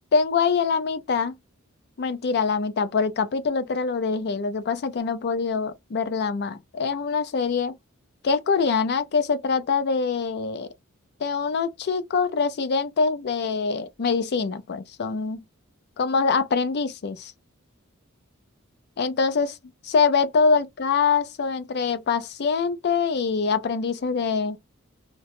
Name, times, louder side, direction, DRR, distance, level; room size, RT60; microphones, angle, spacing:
voice 1, 0.1-1.3 2.0-7.8 8.2-10.7 11.2-15.4 16.0-17.3 19.0-19.5 19.8-24.6, left 5 dB, 50° left, 0.4 m, -24 dB
2.9 x 2.1 x 2.9 m
head